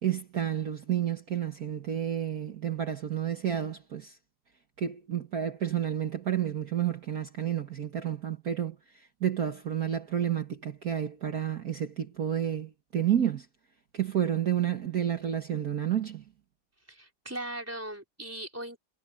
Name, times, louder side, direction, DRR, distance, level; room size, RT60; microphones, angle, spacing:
voice 1, 0.0-4.2 4.8-13.5 13.9-16.2, right 10 dB, 50° right, 1.8 m, -30 dB
voice 2, 16.9-18.8, right 1 dB, 5° right, 4.1 m, -39 dB
omnidirectional pair, 2.1 m